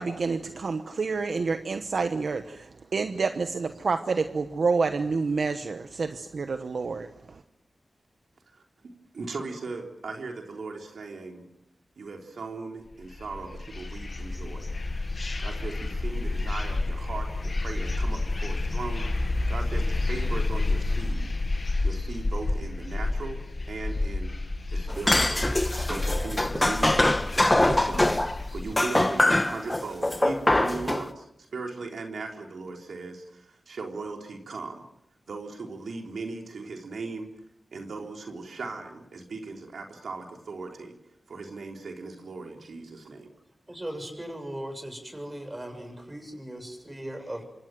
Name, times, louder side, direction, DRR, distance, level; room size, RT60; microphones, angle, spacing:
voice 1, 0.0-7.4, right 4 dB, 70° right, 8 dB, 1.1 m, -28 dB
voice 2, 8.5-11.5 12.0-14.7 15.4-19.1 19.5-21.3 21.8-23.4 23.7-24.4 24.7-25.5 25.8-27.0 27.3-28.2 28.5-34.9 35.3-37.3 37.7-41.0 41.3-43.3, right 3 dB, 85° right, 2 dB, 3.5 m, -38 dB
sound 1, 13.0-28.7, left 2 dB, 45° left, 7.0 m, -30 dB
sound 2, 24.9-28.4 28.8-31.1, left 1 dB, 20° left, 1.2 m, -23 dB
voice 3, 43.7-47.4, right 1 dB, 20° right, 6 dB, 7.1 m, -38 dB
26.5 x 24.5 x 7.7 m, 0.79 s
wide cardioid pair, 70°, 0 cm